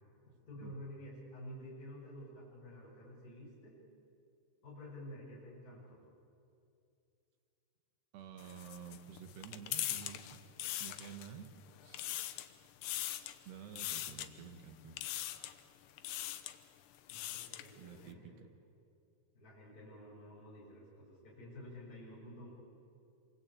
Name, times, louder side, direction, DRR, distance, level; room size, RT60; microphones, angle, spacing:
voice 1, 0.5-3.8 4.6-6.0 17.1-18.3 19.3-22.5, equal, 20° left, -7 dB, 7.5 m, -50 dB
voice 2, 8.1-10.4 10.8-11.5 11.8-12.1 13.0-13.2 13.5-15.0 17.8-18.3, right 8 dB, 65° right, 6 dB, 3.5 m, -50 dB
sound 1, 8.4-11.5 11.8-12.5 12.8-13.4 13.8-14.3 15.0-15.6 16.0-16.6 16.9-17.7, left 13 dB, 75° left, 2.9 m, -41 dB
27.5 x 24.0 x 8.7 m, 2.6 s
omnidirectional pair, 5.3 m